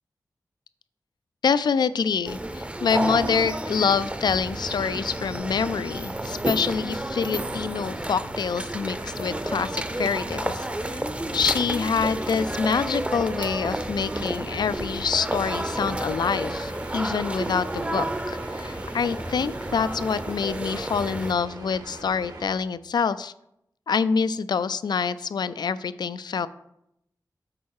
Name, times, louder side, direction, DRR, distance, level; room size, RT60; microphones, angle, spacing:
voice 1, 1.4-11.0 11.3-23.3 23.9-26.5, left 6 dB, 90° left, 15 dB, 0.3 m, -26 dB
sound 1, 2.2-21.3, right 1 dB, 15° right, 0.6 m, -31 dB
sound 2, 4.3-22.4, right 1 dB, 70° right, 1.5 m, -42 dB
8.6 x 4.6 x 4.7 m, 0.80 s
wide cardioid pair, 70°, 7 cm